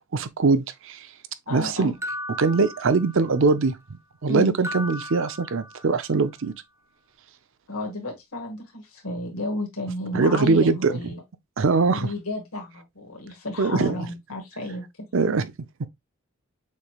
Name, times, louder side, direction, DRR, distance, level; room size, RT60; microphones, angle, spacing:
voice 1, 0.1-1.1 1.5-1.9 2.4-6.5 10.1-10.9 11.6-12.1 13.6-14.1 15.1-15.5 15.8-15.9, right 4 dB, 60° right, 0.6 m, -22 dB
voice 2, 1.5-2.0 4.3-4.5 7.7-11.2 11.9-15.1, left 1 dB, 85° left, 1.7 m, -32 dB
sound 1, 2.0-3.5 4.6-6.1, left 1 dB, 10° right, 0.5 m, -36 dB
6.6 x 3.2 x 2.3 m
head